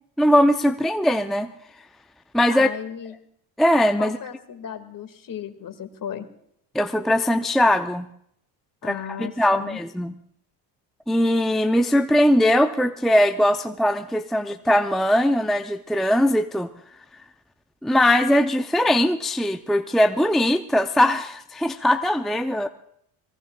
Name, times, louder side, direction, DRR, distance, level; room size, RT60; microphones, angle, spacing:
voice 1, 0.2-1.5 2.3-2.7 3.6-4.2 6.7-8.1 8.8-10.1 11.1-16.7 17.8-22.7, left 1 dB, ahead, 7 dB, 0.6 m, -20 dB
voice 2, 2.5-3.1 4.0-6.3 8.8-9.8, left 8 dB, 40° left, 9 dB, 2.1 m, -35 dB
25.0 x 20.0 x 2.4 m, 0.70 s
supercardioid pair, 75°, 48 cm